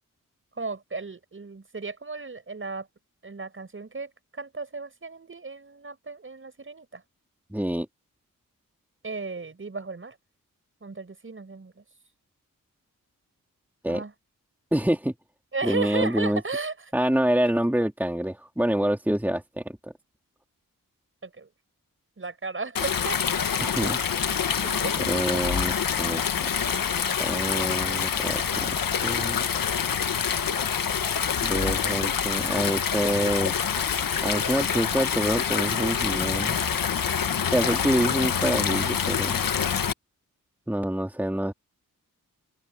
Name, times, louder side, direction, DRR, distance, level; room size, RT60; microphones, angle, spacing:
voice 1, 0.6-2.9 3.2-7.0 9.0-10.2 10.8-11.8 13.9-14.1 15.5-16.7 21.2-21.5 22.2-23.2 24.6-25.0 31.5-31.7 36.7-37.3, right 3 dB, 35° right, 6.1 m, -35 dB
voice 2, 7.5-7.9 13.8-14.0 14.7-15.1 15.6-16.4 16.9-19.9 23.6-24.0 25.1-26.7 27.2-29.4 31.4-33.5 34.2-36.6 37.5-39.4 40.7-41.5, right 1 dB, 5° right, 2.5 m, -26 dB
Stream, 22.8-39.9, left 7 dB, 75° left, 1.8 m, -26 dB
wide cardioid pair, 90°, 34 cm